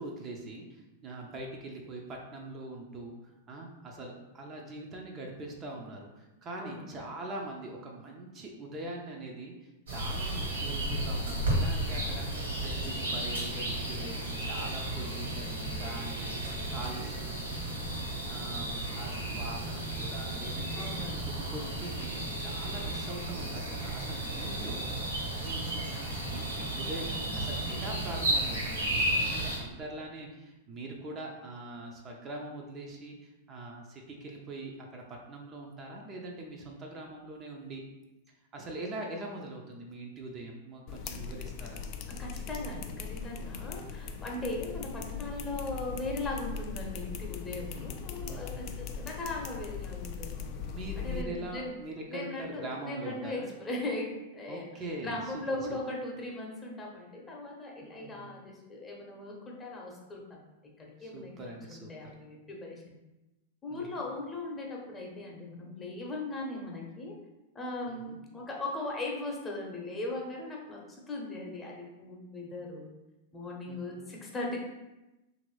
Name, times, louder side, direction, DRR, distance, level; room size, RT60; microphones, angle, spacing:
voice 1, 0.0-12.3 12.6-17.4 17.7-17.9 18.3-21.0 21.2-25.9 26.3-37.8 38.5-41.9 47.7-48.9 50.6-53.5 54.5-55.4 55.7-55.8 57.8-58.2 61.0-62.1 63.7-64.0 67.9-68.2 73.7-74.0, right 2 dB, 30° right, 0 dB, 0.5 m, -43 dB
sound 1, 9.9-29.6, right 1 dB, 80° right, 1.4 m, -33 dB
voice 2, 20.7-21.2 42.2-50.5 51.0-51.7 52.1-54.7 55.0-60.4 60.8-62.8 63.6-67.1 67.5-72.9 73.3-74.6, left 2 dB, 20° left, -1 dB, 0.8 m, -38 dB
sound 2, 40.9-51.2, left 6 dB, 45° left, 0.3 m, -39 dB
2.9 x 2.6 x 3.1 m, 1.0 s
hypercardioid pair, 100°, 0 cm